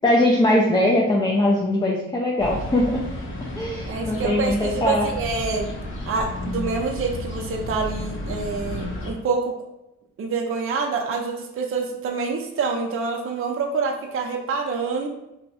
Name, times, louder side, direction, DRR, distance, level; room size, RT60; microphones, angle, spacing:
voice 1, 0.0-3.0 3.6-5.1, left 1 dB, 15° left, -3 dB, 0.5 m, -21 dB
sound 1, 2.4-9.1, left 1 dB, 45° left, 0.8 m, -32 dB
voice 2, 3.9-5.7 6.1-9.5 10.2-15.1, right 4 dB, 45° right, 1 dB, 0.6 m, -26 dB
2.7 x 2.2 x 4.1 m, 0.86 s
cardioid pair, 90°, 30 cm